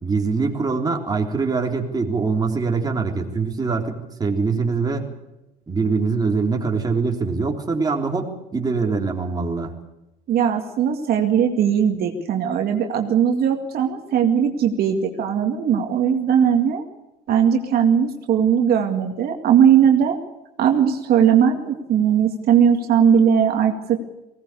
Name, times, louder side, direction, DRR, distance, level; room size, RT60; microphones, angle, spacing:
voice 1, 0.0-5.1 5.7-9.7, right 4 dB, 25° right, 1 dB, 3.5 m, -23 dB
voice 2, 10.3-16.8 17.3-20.2 20.6-24.0, right 8 dB, 65° right, 3 dB, 2.2 m, -19 dB
19.5 x 18.0 x 8.4 m, 0.95 s
cardioid pair, 110°, 17 cm